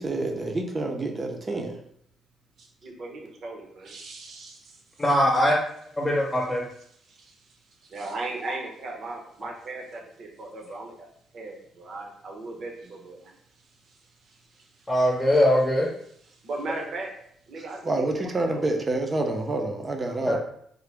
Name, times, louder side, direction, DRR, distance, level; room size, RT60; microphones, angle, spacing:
voice 1, 0.0-1.8 17.8-20.4, right 2 dB, 30° right, 3 dB, 0.6 m, -28 dB
voice 2, 2.6-4.8 7.0-11.1 11.3-13.3 13.9-14.0 14.2-14.9 16.2-17.1 17.5-18.6, right 2 dB, 60° right, 1 dB, 0.9 m, -38 dB
voice 3, 5.0-5.6 6.0-6.6 9.4-9.5 14.9-15.9 20.3-20.4, equal, 15° left, -3 dB, 0.9 m, -21 dB
3.7 x 2.2 x 3.4 m, 0.68 s
cardioid pair, 90°, 0 cm